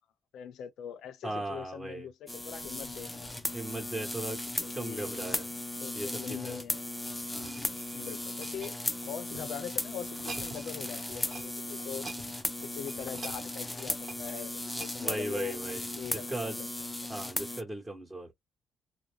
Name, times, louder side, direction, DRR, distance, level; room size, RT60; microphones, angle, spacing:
voice 1, 0.3-3.5 4.6-5.3 5.8-6.9 7.3-7.5 7.9-12.0 12.6-15.6 16.0-16.7, left 8 dB, 80° left, 0.6 m, -42 dB
voice 2, 1.2-2.1 3.5-4.4 4.7-5.4 5.9-6.6 7.3-8.2 11.9-12.0 15.0-16.6 17.1-18.3, right 2 dB, 15° right, 1.1 m, -38 dB
sound 1, 2.3-17.6, left 1 dB, 10° left, 0.5 m, -37 dB
sound 2, 6.4-9.5 10.0-10.7 11.0-11.5 11.8-16.1 16.6-16.8, right 4 dB, 40° right, 1.1 m, -48 dB
2.5 x 2.0 x 3.1 m
cardioid pair, 90°, 0 cm